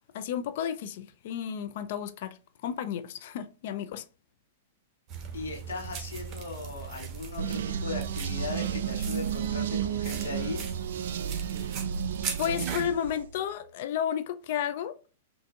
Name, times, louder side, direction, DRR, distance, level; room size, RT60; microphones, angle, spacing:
voice 1, 0.1-2.4 2.6-4.0 12.4-14.9, left 9 dB, 60° left, 0.4 m, -32 dB
sound 1, 5.1-12.9, right 6 dB, 35° right, 1.0 m, -40 dB
voice 2, 5.3-10.6, left 3 dB, 80° left, 1.3 m, -38 dB
sound 2, 7.4-13.4, right 8 dB, 70° right, 0.3 m, -32 dB
5.7 x 2.6 x 2.3 m
hypercardioid pair, 115°, 0 cm